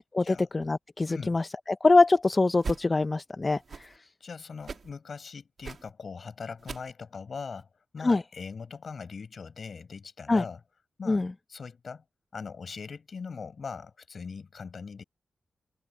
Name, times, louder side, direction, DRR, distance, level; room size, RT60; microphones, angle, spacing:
voice 1, 0.0-1.5 1.8-3.9 8.0-8.2 10.3-10.4 11.1-11.3, left 3 dB, 30° left, 0.5 m, -24 dB
voice 2, 1.1-1.4 4.2-7.7 7.9-10.6 11.0-12.0 12.3-15.0, left 5 dB, 55° left, 5.8 m, -41 dB
sound 1, 2.6-2.8 3.6-4.0 4.6-4.9 5.6-5.9 6.6-6.9 7.6-7.7, right 5 dB, 60° right, 1.4 m, -39 dB
wide cardioid pair, 100°, 0 cm